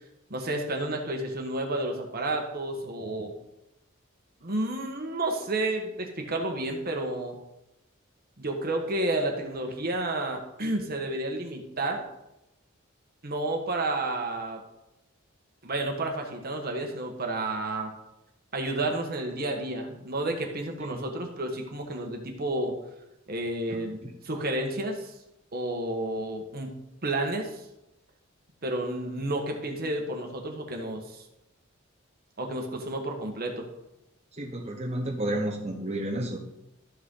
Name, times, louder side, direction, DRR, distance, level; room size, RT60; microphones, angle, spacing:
voice 1, 0.3-3.3 4.4-7.3 8.4-12.0 13.2-14.6 15.6-17.9 18.5-22.7 23.3-24.0 24.2-25.1 25.5-26.7 27.0-27.6 28.6-31.2 32.4-33.7, right 2 dB, 50° right, 3 dB, 1.4 m, -31 dB
voice 2, 23.7-24.1 34.4-36.4, right 1 dB, 35° right, -3 dB, 1.2 m, -32 dB
12.5 x 6.3 x 3.9 m, 0.89 s
head